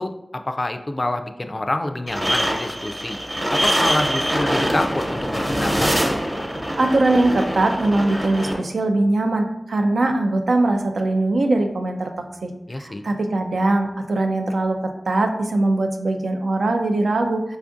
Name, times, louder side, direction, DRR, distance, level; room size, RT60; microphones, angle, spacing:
voice 1, 0.0-3.2 3.5-5.9 12.7-13.0, left 1 dB, 40° left, 7 dB, 0.3 m, -27 dB
sound 1, 2.1-8.5, equal, 30° right, 0.9 m, -24 dB
voice 2, 6.5-12.5 12.8-17.6, right 2 dB, 80° right, 4 dB, 0.4 m, -21 dB
4.9 x 2.4 x 2.5 m, 0.87 s
cardioid pair, 40°, 0 cm